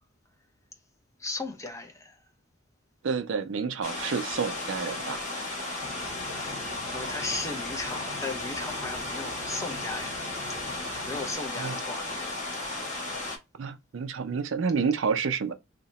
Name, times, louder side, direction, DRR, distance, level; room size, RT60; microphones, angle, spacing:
voice 1, 1.2-2.2 6.4-10.4 11.1-13.0, left 3 dB, 15° left, 0.5 m, -37 dB
voice 2, 3.0-5.2 11.5-11.8 13.6-15.5, right 5 dB, 65° right, 0.4 m, -29 dB
sound 1, 3.8-13.4, left 2 dB, 35° left, 0.9 m, -35 dB
sound 2, 5.8-11.3, left 1 dB, 40° right, 0.8 m, -46 dB
2.8 x 2.1 x 4.0 m
head